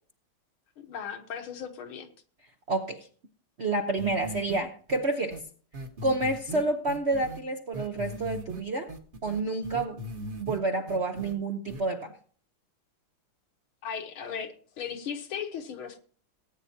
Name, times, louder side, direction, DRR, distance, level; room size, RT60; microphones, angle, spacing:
voice 1, 0.8-2.1 13.8-16.0, left 7 dB, 70° left, 2.0 m, -37 dB
voice 2, 2.7-3.1 3.6-5.4 6.0-8.9 9.2-10.0 10.4-12.2, right 2 dB, 50° right, 0.8 m, -29 dB
sound 1, 4.0-4.6 4.9-5.0 5.3-5.4 5.7-7.4 7.7-8.6 8.9-10.6 10.9-11.3 11.7-11.8, right 1 dB, 30° right, 1.3 m, -38 dB
18.5 x 9.2 x 2.8 m
omnidirectional pair, 2.4 m